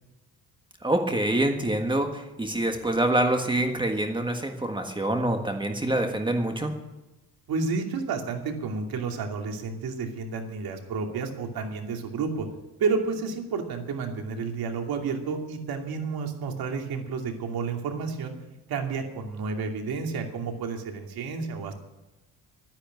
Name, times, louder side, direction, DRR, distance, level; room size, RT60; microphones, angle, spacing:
voice 1, 0.8-6.7, right 1 dB, 10° right, 4 dB, 1.5 m, -26 dB
voice 2, 7.5-12.5 12.8-18.4 18.7-21.7, right 5 dB, 65° right, 3 dB, 2.6 m, -31 dB
12.0 x 10.5 x 9.5 m, 1.0 s
cardioid pair, 135°, 40 cm